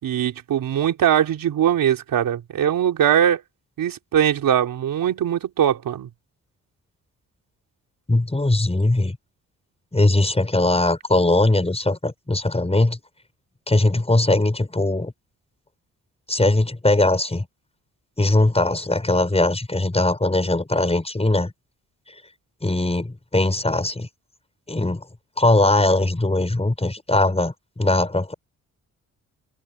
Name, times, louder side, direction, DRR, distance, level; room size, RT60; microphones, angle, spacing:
voice 1, 0.0-3.4 3.8-6.1, right 10 dB, 80° right, 3.8 m, -21 dB
voice 2, 8.1-9.1 9.9-13.0 13.7-15.1 16.3-17.5 18.2-21.5 22.6-24.1 24.7-25.0 25.4-28.3, left 2 dB, 20° left, 6.9 m, -20 dB
cardioid pair, 65°, 34 cm